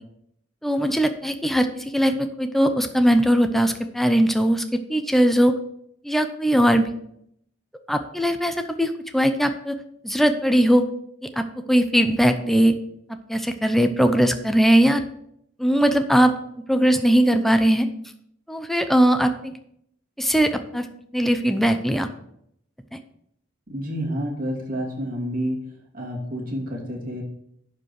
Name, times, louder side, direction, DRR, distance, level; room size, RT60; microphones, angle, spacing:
voice 1, 0.6-5.5 6.0-6.9 7.9-9.8 10.0-10.8 11.2-12.8 13.3-15.0 15.6-16.3 16.7-17.9 18.5-19.5 20.2-20.9 21.1-22.1, equal, ahead, 7 dB, 0.6 m, -20 dB
voice 2, 23.7-25.6 25.9-27.2, equal, 45° right, -1 dB, 2.5 m, -29 dB
11.0 x 5.2 x 4.8 m, 0.71 s
head